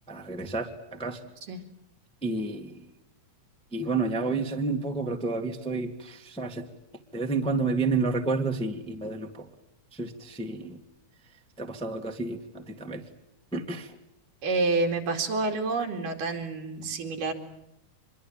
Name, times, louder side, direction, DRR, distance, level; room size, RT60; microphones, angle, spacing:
voice 1, 0.1-1.3 2.2-2.8 3.7-6.7 7.1-9.5 9.9-10.8 11.6-13.1 13.5-13.9, right 3 dB, 5° left, 4 dB, 1.0 m, -30 dB
voice 2, 14.4-17.3, right 3 dB, 85° right, 3 dB, 4.2 m, -28 dB
25.5 x 22.5 x 8.8 m, 0.82 s
omnidirectional pair, 3.7 m